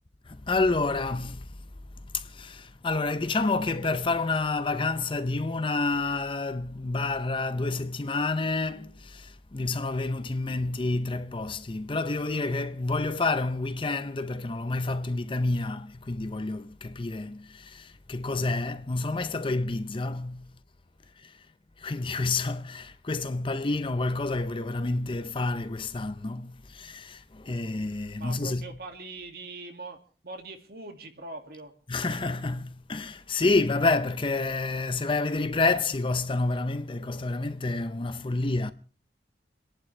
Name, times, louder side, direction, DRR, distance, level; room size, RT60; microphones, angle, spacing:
voice 1, 0.3-1.5 2.1-20.5 21.2-21.3 21.8-28.8 31.9-38.7, left 3 dB, 30° left, 0.6 m, -29 dB
voice 2, 28.2-31.7, right 3 dB, 60° right, 2.2 m, -42 dB
30.0 x 11.0 x 3.3 m
head